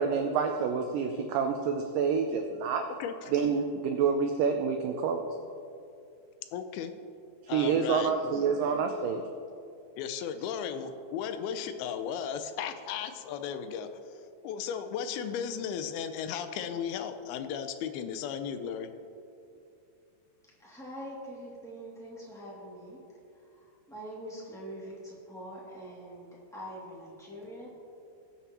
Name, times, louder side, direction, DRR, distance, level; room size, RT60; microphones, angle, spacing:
voice 1, 0.0-2.9 3.3-5.3 7.4-9.3, right 6 dB, 85° right, 5 dB, 1.9 m, -28 dB
voice 2, 6.5-6.9 7.5-8.4 10.0-13.9 14.4-18.9, left 8 dB, 80° left, 8 dB, 2.4 m, -35 dB
voice 3, 20.6-23.0 23.9-27.7, equal, ahead, -6 dB, 1.1 m, -43 dB
21.5 x 7.2 x 3.0 m, 2.5 s
omnidirectional pair, 4.5 m